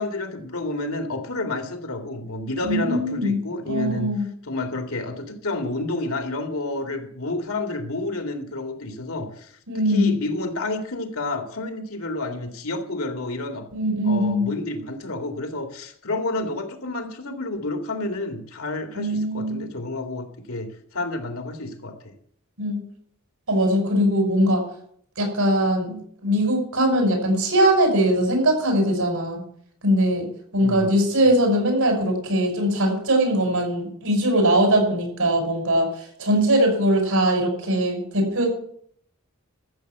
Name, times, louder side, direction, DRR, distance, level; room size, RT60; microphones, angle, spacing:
voice 1, 0.0-4.1 4.4-13.7 14.0-22.1 30.6-30.9, left 2 dB, 80° left, 4 dB, 2.4 m, -30 dB
voice 2, 2.6-3.4 3.7-4.2 9.7-10.1 13.7-14.5 19.0-19.7 22.6-22.8 23.5-24.6 25.2-29.4 29.8-30.3 30.5-35.9 36.2-38.5, right 1 dB, 85° right, 3 dB, 5.8 m, -21 dB
14.0 x 7.2 x 8.1 m, 0.64 s
head